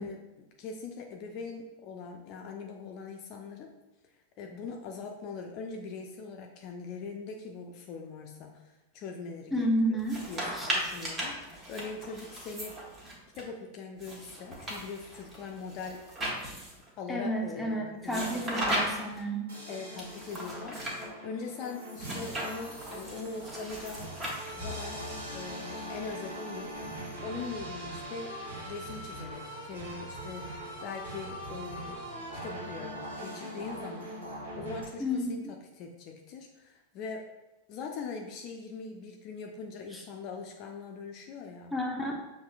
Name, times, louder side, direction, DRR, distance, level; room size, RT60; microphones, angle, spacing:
voice 1, 0.0-3.7 4.4-10.0 10.3-12.8 13.3-16.0 17.0-18.6 19.7-24.1 24.5-26.7 27.2-28.4 28.7-37.3 37.7-41.7, left 4 dB, 40° left, 2 dB, 0.4 m, -42 dB
voice 2, 9.5-10.2 10.5-10.7 17.1-19.5 35.0-35.5 39.9-40.0 41.7-42.1, equal, ahead, -1 dB, 0.7 m, -31 dB
sound 1, 10.0-13.4 14.0-16.9 18.1-19.2 20.0-21.1 22.0-24.8, right 1 dB, 20° right, 1.1 m, -36 dB
sound 2, 19.5-34.8, right 1 dB, 65° right, 1.3 m, -41 dB
6.4 x 2.6 x 2.4 m, 1.0 s
figure-of-eight pair, 90°, 0 cm